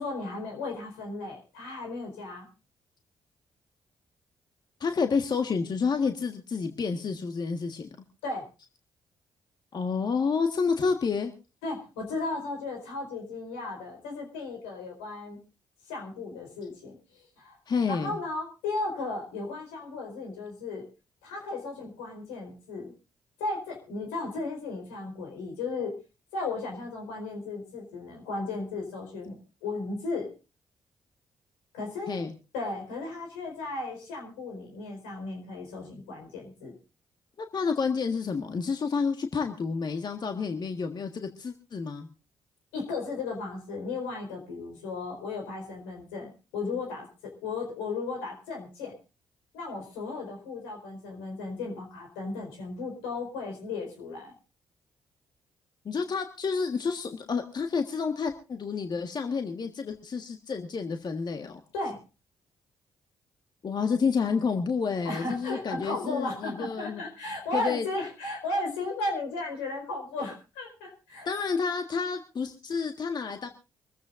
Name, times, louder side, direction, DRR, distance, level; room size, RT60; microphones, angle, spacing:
voice 1, 0.0-2.5 8.2-8.4 11.6-15.4 15.9-17.6 17.9-20.8 21.2-22.9 23.4-25.9 26.3-30.3 31.7-32.2 32.5-36.7 42.7-47.1 47.4-48.9 49.5-54.3 61.7-62.0 65.0-71.3, left 3 dB, 85° left, 2 dB, 4.5 m, -35 dB
voice 2, 4.8-7.9 9.7-11.3 17.7-18.2 32.1-32.3 37.5-42.1 55.8-61.6 63.6-67.0 67.5-67.8 71.2-73.5, left 5 dB, 50° left, 6 dB, 1.5 m, -29 dB
25.0 x 14.5 x 2.6 m, 0.31 s
hypercardioid pair, 45°, 10 cm